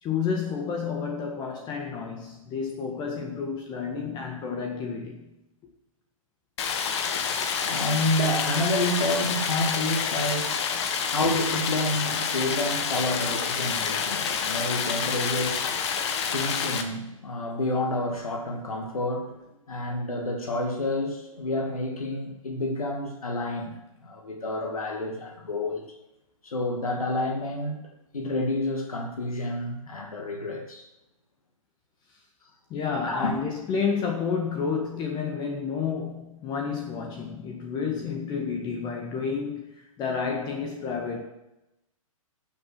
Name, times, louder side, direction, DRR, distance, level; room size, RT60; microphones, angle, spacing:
voice 1, 0.0-5.2 32.7-41.2, left 5 dB, 25° left, 1 dB, 1.7 m, -30 dB
Stream, 6.6-16.8, left 6 dB, 50° left, 1.7 m, -28 dB
voice 2, 7.1-26.0 26.4-30.8 33.1-33.4, left 1 dB, 90° left, 1 dB, 2.3 m, -29 dB
13.0 x 7.3 x 6.1 m, 0.92 s
hypercardioid pair, 135°, 18 cm